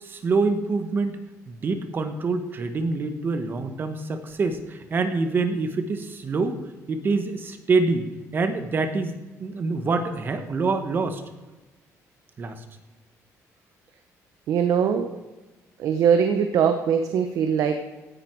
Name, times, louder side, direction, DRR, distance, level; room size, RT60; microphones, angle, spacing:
voice 1, 0.0-1.2 1.5-6.6 6.9-8.1 8.3-11.2 12.4-12.6, right 3 dB, 35° right, 8 dB, 1.6 m, -26 dB
voice 2, 14.5-15.1 15.8-17.8, right 7 dB, 70° right, 7 dB, 1.1 m, -21 dB
16.5 x 10.5 x 4.8 m, 1.1 s
cardioid pair, 140°, 6 cm